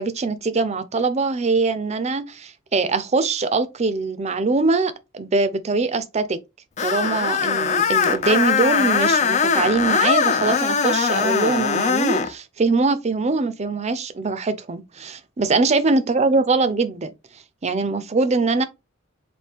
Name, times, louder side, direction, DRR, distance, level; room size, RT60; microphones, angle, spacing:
voice 1, 0.0-6.4 6.8-17.1 17.6-18.6, right 3 dB, 35° right, 0.5 m, -22 dB
Screech, 6.8-12.3, left 6 dB, 35° left, 0.4 m, -21 dB
4.3 x 2.7 x 3.4 m
head